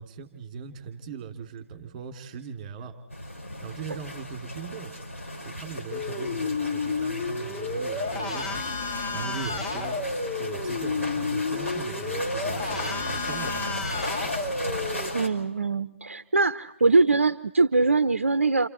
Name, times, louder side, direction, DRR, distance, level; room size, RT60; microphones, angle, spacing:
voice 1, 0.0-2.9 3.6-4.9 5.4-14.0, right 6 dB, 30° right, 6 dB, 2.7 m, -39 dB
sound 1, 3.1-15.3, left 1 dB, 80° left, 5.1 m, -36 dB
sound 2, 5.9-15.1, left 4 dB, 30° left, 2.0 m, -31 dB
voice 2, 15.1-18.7, right 3 dB, 75° right, 14 dB, 0.7 m, -22 dB
29.0 x 27.0 x 4.3 m, 0.87 s
figure-of-eight pair, 140°, 7 cm